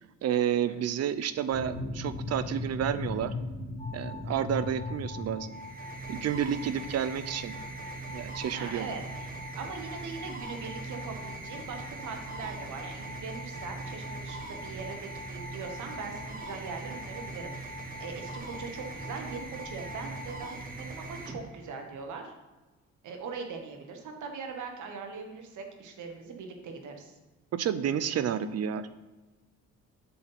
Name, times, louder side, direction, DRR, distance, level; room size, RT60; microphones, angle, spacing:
voice 1, 0.2-3.3 3.9-5.5 6.1-7.6 8.1-8.9 27.5-28.9, right 9 dB, 55° right, 13 dB, 0.6 m, -30 dB
sound 1, 1.5-5.8, left 2 dB, 55° left, 2.7 m, -37 dB
sound 2, 3.8-20.6, left 2 dB, 20° left, 1.0 m, -46 dB
sound 3, 5.4-21.9, right 2 dB, 30° right, 1.5 m, -41 dB
voice 2, 8.5-22.3 23.0-27.2, right 5 dB, 75° right, 4 dB, 1.3 m, -41 dB
7.5 x 4.2 x 5.6 m, 1.2 s
cardioid pair, 90°, 30 cm